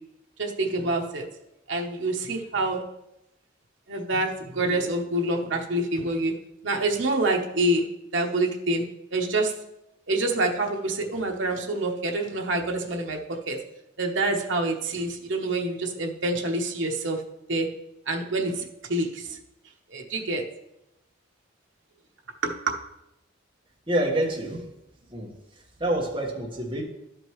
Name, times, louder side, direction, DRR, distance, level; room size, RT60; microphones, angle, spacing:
voice 1, 0.4-1.3 1.7-2.8 3.9-6.4 6.6-7.9 8.1-8.8 9.1-9.6 10.1-13.6 14.0-17.2 17.5-17.7 18.1-19.4 19.9-20.4 22.4-22.8, right 2 dB, 75° right, 2 dB, 1.0 m, -26 dB
voice 2, 23.9-24.7 25.1-25.3 25.8-26.8, right 1 dB, 25° right, -2 dB, 1.3 m, -27 dB
12.0 x 5.2 x 3.1 m, 0.87 s
head